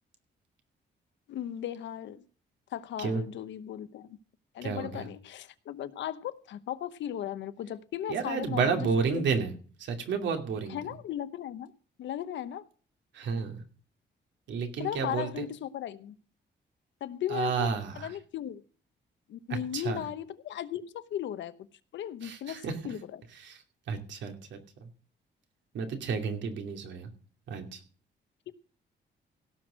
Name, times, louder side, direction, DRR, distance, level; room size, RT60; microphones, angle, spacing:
voice 1, 1.3-2.3 2.7-4.1 4.5-9.3 10.7-11.7 12.0-12.6 14.8-16.2 17.0-18.6 19.3-21.7 21.9-23.2 28.5-28.6, left 11 dB, 80° left, 1.0 m, -37 dB
voice 2, 4.6-5.1 8.1-9.5 9.8-10.8 13.1-13.6 14.5-15.4 17.3-18.1 19.5-20.0 22.2-22.9 23.4-23.6 23.9-24.6 25.7-27.1 27.5-27.8, right 5 dB, 80° right, 2.6 m, -31 dB
17.0 x 6.3 x 6.2 m
cardioid pair, 165°, 19 cm